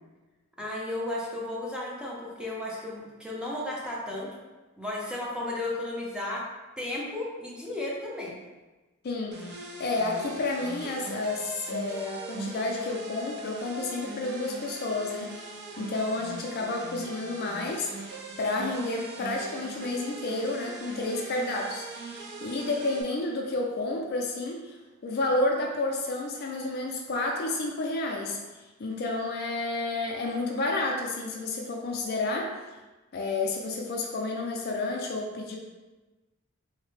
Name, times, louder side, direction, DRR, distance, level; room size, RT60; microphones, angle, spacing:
voice 1, 0.6-4.3 4.8-6.4 6.8-8.4, left 1 dB, 5° right, -5 dB, 0.5 m, -34 dB
voice 2, 9.0-24.8 25.0-28.4 28.8-32.5 33.1-35.6, left 2 dB, 50° left, 0 dB, 0.4 m, -30 dB
sound 1, 9.3-23.0, right 2 dB, 55° right, 0.4 m, -41 dB
3.2 x 2.1 x 3.1 m, 1.2 s
head